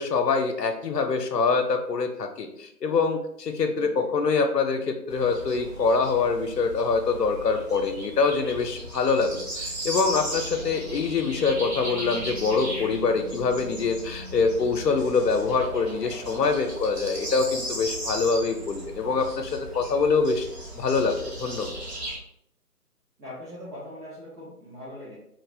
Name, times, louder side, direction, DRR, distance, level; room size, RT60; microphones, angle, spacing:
voice 1, 0.0-20.5 20.7-21.7, left 4 dB, 90° left, 4 dB, 0.5 m, -25 dB
voice 2, 3.6-3.9 16.2-16.5 23.2-25.2, left 1 dB, 85° right, -8 dB, 1.3 m, -41 dB
sound 1, 5.1-22.2, right 1 dB, 45° right, 0.8 m, -36 dB
3.0 x 2.4 x 2.6 m, 0.75 s
figure-of-eight pair, 150°, 47 cm